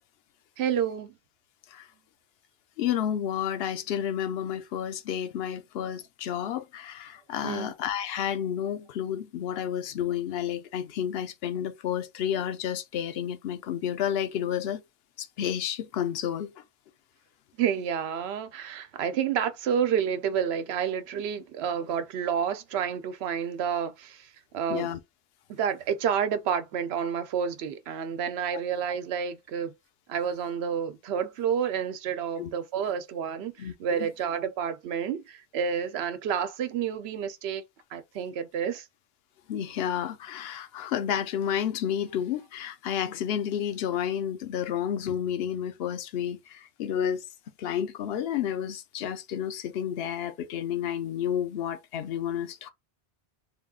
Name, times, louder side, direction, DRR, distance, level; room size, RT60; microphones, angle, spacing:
voice 1, 0.6-1.1 7.4-7.7 17.6-24.9 25.5-29.7 30.1-37.6 37.9-38.9, right 8 dB, 90° right, 0.8 m, -29 dB
voice 2, 2.8-14.8 15.2-16.5 24.7-25.0 32.4-32.5 33.6-33.7 34.0-34.1 39.5-47.2 47.6-52.7, left 9 dB, 75° left, 0.8 m, -31 dB
3.4 x 2.3 x 3.6 m
omnidirectional pair, 1.0 m